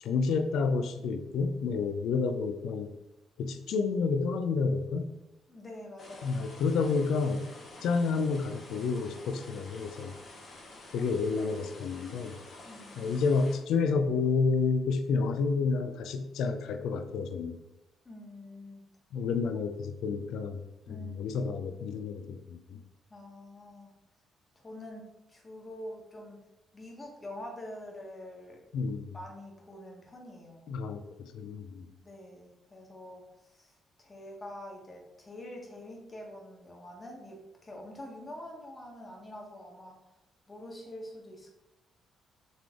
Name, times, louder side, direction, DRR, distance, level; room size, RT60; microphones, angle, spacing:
voice 1, 0.0-2.9 3.4-5.1 6.2-7.4 7.8-10.1 10.9-12.4 13.0-17.6 19.1-20.6 20.9-22.8 28.7-29.1 30.7-31.9, left 4 dB, 80° left, 8 dB, 0.4 m, -30 dB
voice 2, 5.5-6.4 12.6-13.2 18.0-18.8 19.5-19.6 20.9-21.6 23.1-23.9 24.6-26.4 26.7-28.6 29.1-30.7 32.0-33.7 34.0-40.0 40.5-41.5, left 1 dB, 25° left, 0 dB, 1.2 m, -46 dB
sound 1, 6.0-13.6, left 2 dB, 50° left, 0.9 m, -50 dB
3.9 x 3.2 x 3.6 m, 0.93 s
cardioid pair, 90°, 0 cm